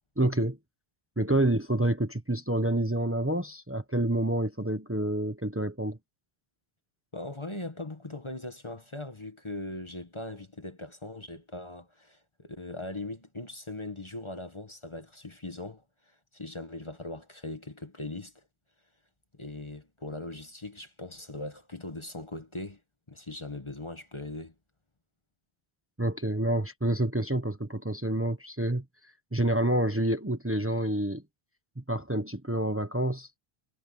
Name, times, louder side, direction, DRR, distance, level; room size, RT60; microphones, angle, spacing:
voice 1, 0.2-0.6 1.2-6.0 26.0-28.8 29.3-31.2 31.8-33.3, right 1 dB, 15° right, 1.2 m, -28 dB
voice 2, 7.1-18.4 19.3-22.8 23.1-24.5, left 2 dB, 30° left, 1.5 m, -40 dB
omnidirectional pair, 1.0 m